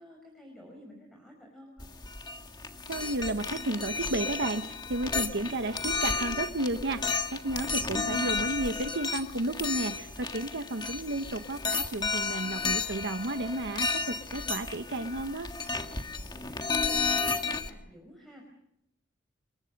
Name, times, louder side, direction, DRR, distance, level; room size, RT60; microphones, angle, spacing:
voice 1, 0.0-1.9 15.9-18.4, equal, ahead, 1 dB, 5.2 m, -52 dB
sound 1, 1.8-17.7, left 4 dB, 20° left, 1.7 m, -33 dB
voice 2, 2.9-15.5, right 2 dB, 60° right, 7 dB, 1.1 m, -32 dB
29.0 x 22.5 x 5.3 m, 0.78 s
head